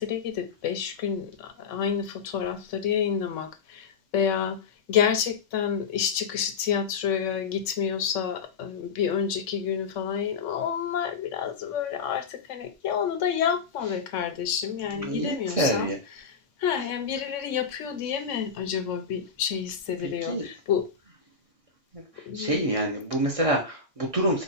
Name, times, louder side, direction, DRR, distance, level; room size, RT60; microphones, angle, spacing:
voice 1, 0.0-4.6 4.9-16.3 16.6-20.9 22.3-22.7, left 8 dB, 90° left, 1.0 m, -29 dB
voice 2, 15.0-16.0 20.3-20.4 22.3-24.4, right 1 dB, 35° right, 0.7 m, -26 dB
3.0 x 2.4 x 4.0 m
omnidirectional pair, 1.2 m